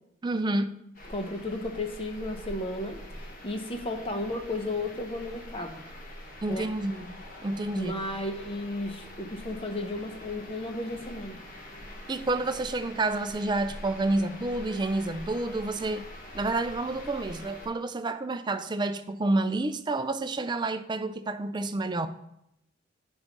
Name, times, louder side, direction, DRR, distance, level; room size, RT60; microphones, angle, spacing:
voice 1, 0.2-0.7 6.4-7.9 12.1-16.0 16.3-22.1, right 2 dB, 20° right, 10 dB, 0.4 m, -29 dB
sound 1, 0.9-17.7, left 1 dB, 45° left, 1.2 m, -45 dB
voice 2, 1.1-5.8 6.5-6.7 7.7-11.4, left 1 dB, 30° left, 5 dB, 0.8 m, -34 dB
5.5 x 5.3 x 6.0 m, 0.80 s
head